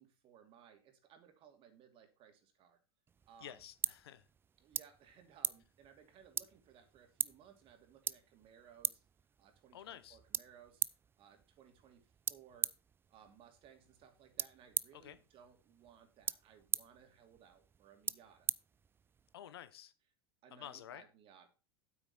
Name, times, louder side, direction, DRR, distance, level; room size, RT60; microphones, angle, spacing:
voice 1, 0.0-2.8 3.3-3.6 4.6-9.0 9.4-10.8 11.2-12.7 13.1-18.5 20.4-21.5, right 8 dB, 45° right, 6 dB, 2.7 m, -62 dB
sound 1, 3.1-19.3, right 6 dB, 15° right, 0.4 m, -43 dB
voice 2, 3.4-4.2 9.7-10.2 14.9-15.2 19.3-19.9 20.5-21.0, left 11 dB, 75° left, 14 dB, 1.0 m, -51 dB
8.8 x 8.4 x 4.2 m, 0.33 s
hypercardioid pair, 95°, 13 cm